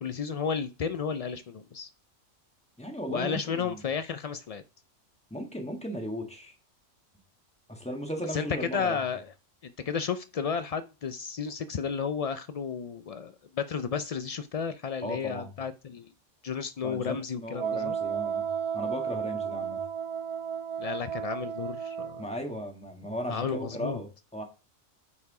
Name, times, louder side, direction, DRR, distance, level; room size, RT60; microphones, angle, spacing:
voice 1, 0.0-1.9 3.1-4.6 8.3-9.3 9.6-16.1 16.4-18.0 20.8-22.2 23.3-24.0, left 6 dB, 75° left, 0.3 m, -32 dB
voice 2, 2.8-3.8 5.3-6.5 7.7-9.0 15.0-15.5 16.8-18.5 18.7-19.8 22.2-24.4, equal, 5° left, 1.4 m, -36 dB
Wind instrument woodwind instrument, 17.5-22.3, right 7 dB, 35° right, 0.6 m, -33 dB
8.4 x 4.7 x 4.7 m
omnidirectional pair, 1.3 m